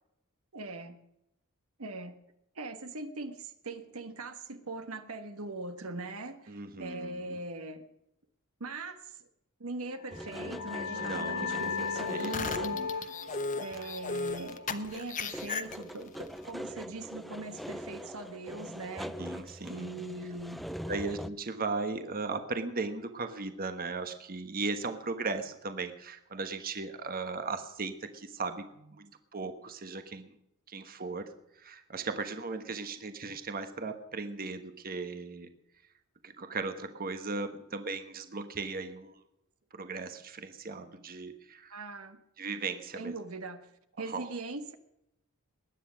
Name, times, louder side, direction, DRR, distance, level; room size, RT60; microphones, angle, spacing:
voice 1, 0.5-1.0 1.8-2.2 2.5-7.9 8.6-9.3 9.6-13.2 13.6-19.2 19.7-20.7 41.7-42.2 42.9-44.7, right 2 dB, 70° right, 8 dB, 1.4 m, -41 dB
voice 2, 6.5-7.4 10.9-11.7 12.1-12.3 12.7-12.9 19.2-19.9 20.9-28.7 28.9-30.3 30.7-35.5 36.2-39.2 39.7-41.8 42.4-43.1 44.0-44.3, right 3 dB, 40° right, 8 dB, 1.3 m, -37 dB
sound 1, 10.0-15.3, left 5 dB, 70° left, 1.5 m, -37 dB
sound 2, 10.1-12.9 13.3-13.4 13.7-14.5 14.8-21.3, equal, ahead, 0.5 m, -42 dB
sound 3, 12.1-16.1, left 4 dB, 35° left, 1.0 m, -36 dB
20.5 x 9.8 x 6.3 m, 0.82 s
head